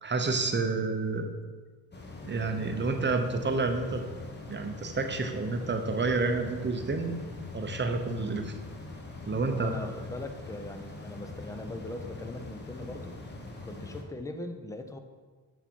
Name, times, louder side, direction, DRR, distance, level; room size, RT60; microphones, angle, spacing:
voice 1, 0.0-1.3 2.2-4.0 4.5-7.2 7.5-8.5 9.3-9.9, right 3 dB, 25° right, 5 dB, 0.8 m, -29 dB
sound 1, 1.9-14.0, left 2 dB, 25° left, 1.2 m, -43 dB
voice 2, 9.5-13.2 13.6-15.0, left 2 dB, 5° left, 6 dB, 0.6 m, -40 dB
6.9 x 4.2 x 4.5 m, 1.4 s
cardioid pair, 70°, 45 cm